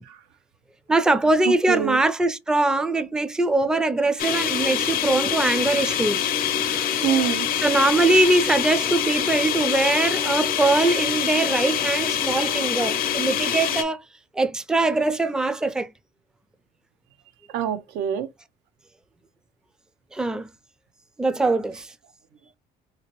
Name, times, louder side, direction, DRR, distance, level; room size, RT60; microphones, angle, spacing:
voice 1, 0.9-6.3 6.6-7.2 7.6-14.0 14.4-15.9 20.1-20.5 21.2-21.9, right 2 dB, 5° right, 0.4 m, -22 dB
voice 2, 1.4-2.0 7.0-7.5 17.5-18.3, right 10 dB, 90° right, 0.6 m, -25 dB
sound 1, 4.2-13.8, left 9 dB, 60° left, 0.5 m, -25 dB
2.9 x 2.7 x 3.0 m
cardioid pair, 110°, 17 cm